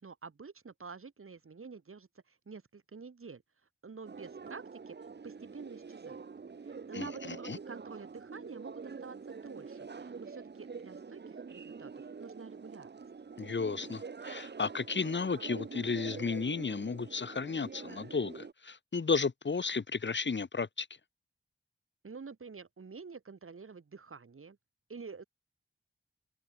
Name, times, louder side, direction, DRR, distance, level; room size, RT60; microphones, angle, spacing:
voice 1, 0.0-3.4 3.8-5.0 5.2-6.2 6.6-11.2 11.5-12.9 22.0-24.6 24.9-25.2, right 5 dB, 85° right, 4.5 m, -48 dB
sound 1, 4.1-18.5, right 5 dB, 55° right, 0.8 m, -46 dB
voice 2, 6.9-7.6 13.4-20.9, left 4 dB, 60° left, 1.3 m, -33 dB
cardioid pair, 50°, 21 cm